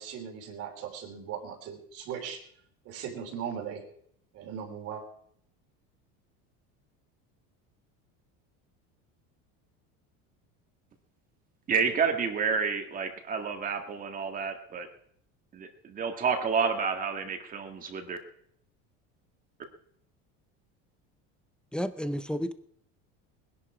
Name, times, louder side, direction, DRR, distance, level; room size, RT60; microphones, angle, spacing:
voice 1, 0.0-2.4 2.9-3.8 4.3-5.0, right 8 dB, 50° right, 4 dB, 3.6 m, -38 dB
voice 2, 11.7-14.9 15.5-18.2, right 5 dB, 25° right, 6 dB, 1.9 m, -29 dB
voice 3, 21.7-22.5, equal, 5° left, 12 dB, 0.5 m, -31 dB
20.0 x 11.0 x 4.9 m, 0.66 s
cardioid pair, 160°, 31 cm